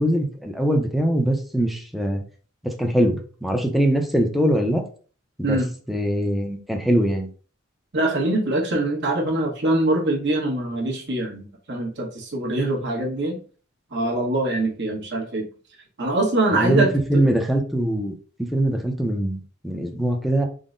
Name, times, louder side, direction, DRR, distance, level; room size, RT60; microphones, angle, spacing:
voice 1, 0.0-2.2 2.6-4.8 5.4-5.6 5.9-7.3 16.5-20.5, right 1 dB, ahead, 3 dB, 0.5 m, -22 dB
voice 2, 7.9-13.4 13.9-15.5 16.0-17.2, right 2 dB, 60° right, -1 dB, 1.1 m, -23 dB
3.8 x 2.1 x 3.7 m, 0.40 s
head